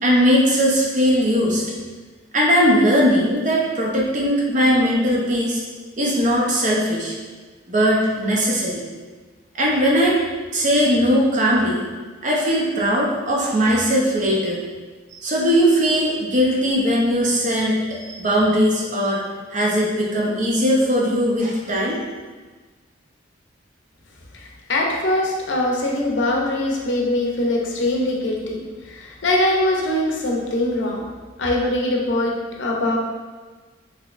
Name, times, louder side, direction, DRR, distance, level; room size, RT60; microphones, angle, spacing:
voice 1, 0.0-1.6 2.3-5.6 6.0-7.1 7.7-8.9 9.5-10.2 10.5-11.8 12.2-14.6 15.2-19.2 19.5-22.0, equal, 40° right, -3 dB, 0.6 m, -19 dB
voice 2, 24.3-31.0 31.4-33.0, left 1 dB, 65° left, -1 dB, 0.6 m, -22 dB
3.9 x 2.8 x 2.4 m, 1.4 s
head